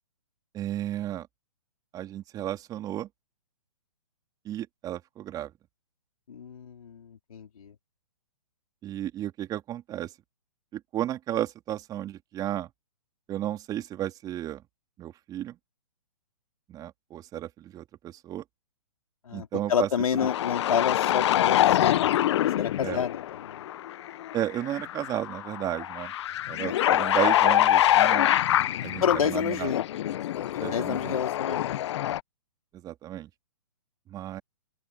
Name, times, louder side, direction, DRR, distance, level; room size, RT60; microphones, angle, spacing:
voice 1, 0.5-1.3 1.9-3.1 4.5-5.5 8.8-10.1 10.7-12.7 13.3-14.6 15.0-15.6 16.7-18.4 19.3-19.9 22.8-23.0 24.3-26.1 26.5-28.3 28.8-29.7 30.6-31.2 31.5-31.6 32.7-33.3 34.1-34.4, right 12 dB, 20° right, 3.5 m, -33 dB
voice 2, 6.3-7.7 19.3-23.6 29.0-31.8, left 7 dB, 75° left, 4.2 m, -30 dB
sound 1, 20.2-32.2, left 12 dB, 50° left, 1.2 m, -25 dB
open air
hypercardioid pair, 140°, 18 cm